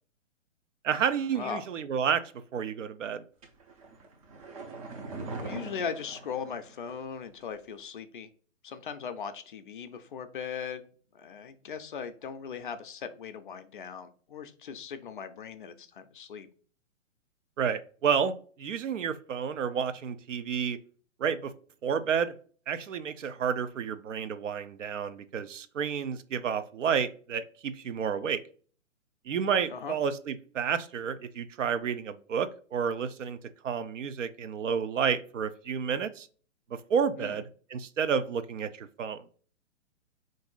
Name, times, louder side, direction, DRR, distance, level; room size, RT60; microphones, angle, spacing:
voice 1, 0.8-3.2 17.6-20.8 21.2-21.5 21.8-22.4 22.7-28.4 29.3-36.3 36.7-39.2, right 7 dB, 75° right, 11 dB, 0.6 m, -30 dB
voice 2, 1.4-1.7 5.4-8.3 8.6-10.8 11.1-16.5 29.7-30.0 37.2-37.4, left 7 dB, 45° left, 9 dB, 0.4 m, -39 dB
sound 1, 3.4-7.1 7.4-7.5, right 3 dB, 30° right, 0.5 m, -42 dB
3.7 x 2.6 x 3.8 m, 0.43 s
figure-of-eight pair, 130°, 38 cm